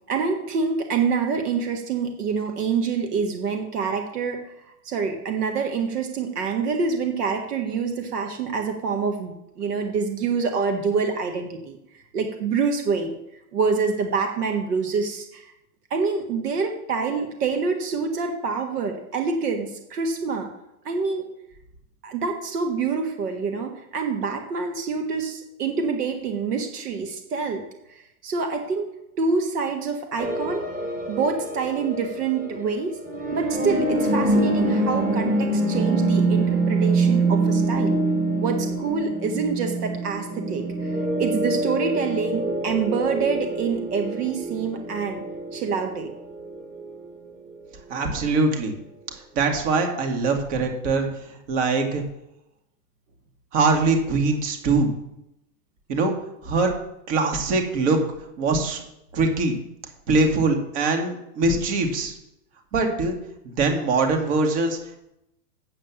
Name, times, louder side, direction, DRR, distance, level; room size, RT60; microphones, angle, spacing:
voice 1, 0.1-4.4 4.8-11.8 12.1-13.1 13.5-15.5 15.9-20.5 20.9-21.3 22.0-27.6 27.9-28.9 29.2-30.6 31.1-33.0 33.3-38.0 38.4-45.2 45.5-46.1, right 5 dB, 80° right, 4 dB, 1.9 m, -26 dB
sound 1, 30.2-47.9, right 2 dB, 20° right, 1.9 m, -25 dB
voice 2, 47.9-48.7 49.4-52.0 53.5-54.9 55.9-56.2 56.4-56.7 57.1-58.0 58.4-58.8 59.1-59.6 60.1-62.1 62.7-63.2 63.4-64.8, right 3 dB, 50° right, 4 dB, 2.5 m, -22 dB
8.4 x 7.9 x 7.4 m, 0.83 s
supercardioid pair, 145°, 46 cm